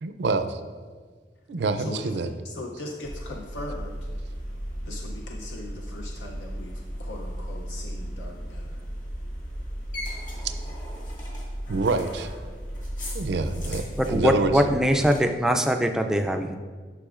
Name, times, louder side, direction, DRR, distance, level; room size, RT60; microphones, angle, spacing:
voice 1, 0.0-0.6 1.5-2.3 10.4-10.5 11.7-12.3 13.1-13.8 14.1-14.5, right 3 dB, 75° right, 10 dB, 0.4 m, -26 dB
voice 2, 1.8-4.1 4.8-8.8, left 1 dB, 85° left, 1 dB, 0.6 m, -39 dB
sound 1, 3.0-15.2, equal, 45° left, 1.7 m, -35 dB
voice 3, 14.0-16.6, equal, 5° right, 4 dB, 0.3 m, -22 dB
10.0 x 6.0 x 2.5 m, 1.5 s
head